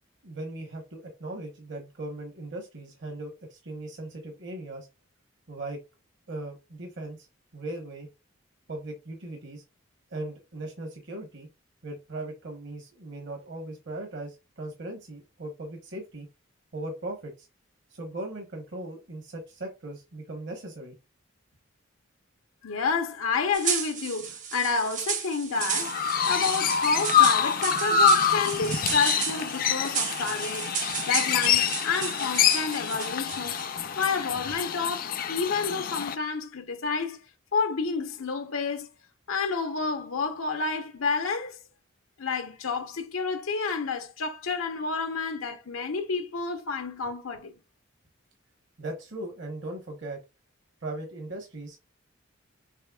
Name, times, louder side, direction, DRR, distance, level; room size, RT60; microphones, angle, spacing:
voice 1, 0.2-4.9 5.5-5.8 6.3-7.3 7.5-8.1 8.7-9.6 10.1-11.5 11.8-16.3 16.7-17.5 17.9-20.9 48.8-50.2 50.8-51.8, right 2 dB, 60° right, 1.1 m, -38 dB
voice 2, 22.6-26.0 26.3-30.7 31.1-33.6 34.0-37.2 37.5-38.9 39.3-41.6 42.2-47.5, left 4 dB, 85° left, 0.9 m, -30 dB
sound 1, 23.5-33.8, right 7 dB, 40° right, 0.7 m, -33 dB
Chirp tweet, 25.6-36.2, left 7 dB, 45° left, 0.4 m, -26 dB
6.5 x 3.2 x 2.3 m
head